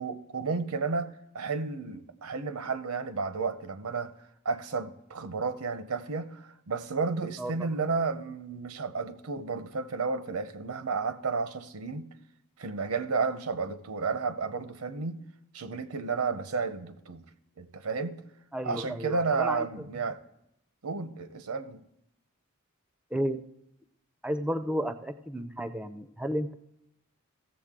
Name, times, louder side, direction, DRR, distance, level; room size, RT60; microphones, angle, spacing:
voice 1, 0.0-12.1 12.6-15.2 15.5-17.2 17.6-18.2 18.6-20.2 20.8-21.8, right 4 dB, 90° right, 0.7 m, -32 dB
voice 2, 18.5-19.7 23.1-23.4 24.2-26.5, equal, 5° right, 0.4 m, -32 dB
16.0 x 7.0 x 3.6 m
head